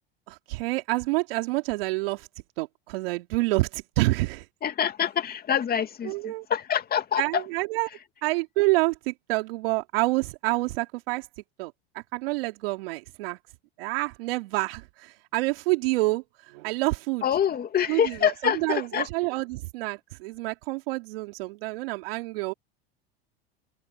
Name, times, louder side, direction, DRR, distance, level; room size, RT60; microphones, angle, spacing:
voice 1, 0.3-2.3 2.6-4.5 6.0-6.5 7.2-7.9 8.2-11.3 11.6-13.4 13.8-17.3 17.9-22.5, right 22 dB, 70° right, 2.7 m, -28 dB
voice 2, 4.6-7.4 17.2-19.1, left 8 dB, 30° left, 2.5 m, -26 dB
hypercardioid pair, 90°, 31 cm